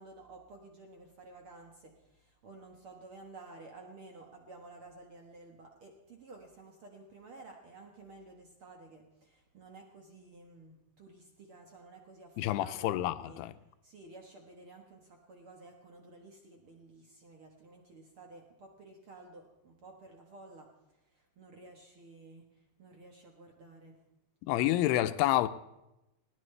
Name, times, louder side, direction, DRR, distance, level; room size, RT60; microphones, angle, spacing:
voice 1, 0.0-13.4 13.8-20.7 21.4-22.5 22.8-24.0, right 3 dB, 70° right, 1.3 m, -53 dB
voice 2, 12.4-13.5 24.4-25.5, left 14 dB, 85° left, 2.7 m, -28 dB
20.5 x 17.5 x 3.3 m
omnidirectional pair, 4.6 m